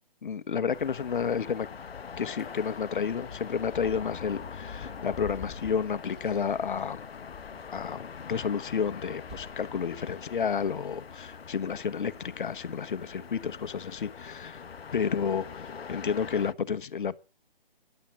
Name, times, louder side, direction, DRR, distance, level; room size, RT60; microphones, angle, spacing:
voice 1, 0.2-1.7 2.2-7.1 7.7-14.6 14.9-17.2, left 6 dB, 55° left, 1.2 m, -31 dB
sound 1, 0.7-16.5, left 6 dB, 85° left, 0.8 m, -43 dB
sound 2, 2.4-3.7 5.0-6.1 7.9-9.0 9.3-10.0 12.3-12.7, right 3 dB, ahead, 2.0 m, -57 dB
sound 3, 3.1-8.6, left 5 dB, 25° left, 4.8 m, -47 dB
14.0 x 11.0 x 8.7 m
hypercardioid pair, 155°, 30 cm